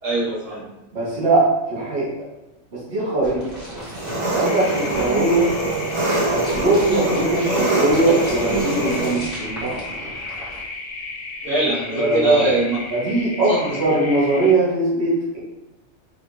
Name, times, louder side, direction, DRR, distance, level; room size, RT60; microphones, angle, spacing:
voice 1, 0.0-0.6 11.4-12.8 13.5-13.7, right 2 dB, 85° right, -8 dB, 1.6 m, -21 dB
voice 2, 0.9-2.1 2.7-3.9 4.2-5.5 6.2-9.8 11.9-12.5 12.9-15.4, right 2 dB, 60° right, -8 dB, 1.6 m, -21 dB
sound 1, 3.2-10.6, equal, 35° left, 1.2 m, -37 dB
Engine, 3.9-9.1, right 2 dB, 30° right, 0.8 m, -24 dB
sound 2, 4.5-14.5, left 3 dB, 60° left, 0.4 m, -34 dB
4.7 x 2.6 x 3.1 m, 0.97 s
omnidirectional pair, 1.3 m